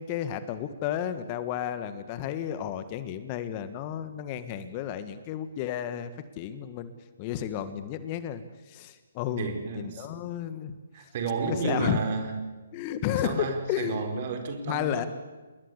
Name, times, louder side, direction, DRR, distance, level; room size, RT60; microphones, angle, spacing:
voice 1, 0.0-6.9 7.2-10.8 11.4-12.0 12.7-14.3 14.6-15.1, left 10 dB, 30° left, 11 dB, 1.7 m, -32 dB
voice 2, 9.4-10.1 10.9-12.5 13.2-15.1, right 4 dB, 40° right, 6 dB, 4.6 m, -32 dB
28.5 x 21.5 x 8.4 m, 1.3 s
figure-of-eight pair, 135°, 0 cm